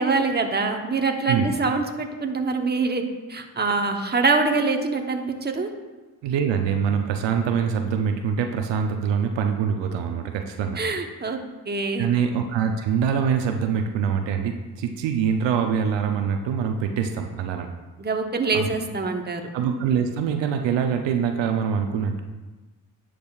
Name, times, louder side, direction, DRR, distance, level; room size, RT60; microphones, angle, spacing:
voice 1, 0.0-3.0 3.3-5.7 10.8-11.4 11.7-12.1 18.0-19.4, right 3 dB, 20° right, 4 dB, 1.0 m, -24 dB
voice 2, 6.2-10.8 12.0-17.7 18.5-18.7 19.5-22.2, right 7 dB, 75° right, 5 dB, 0.7 m, -24 dB
10.5 x 5.1 x 2.4 m, 1.2 s
supercardioid pair, 50°, 44 cm